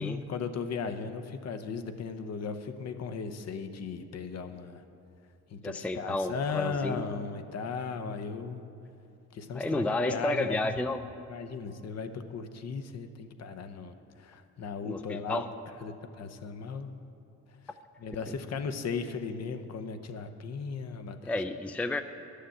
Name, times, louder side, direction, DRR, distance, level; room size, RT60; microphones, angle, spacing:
voice 1, 0.0-4.8 5.5-8.6 9.3-10.6 11.3-15.4 15.8-16.9 18.0-21.3, left 5 dB, 55° left, 8 dB, 0.8 m, -36 dB
voice 2, 5.6-7.0 9.5-11.0 14.8-15.5 21.3-22.0, left 2 dB, 5° left, 9 dB, 0.4 m, -31 dB
11.0 x 6.6 x 7.8 m, 2.7 s
cardioid pair, 90°, 30 cm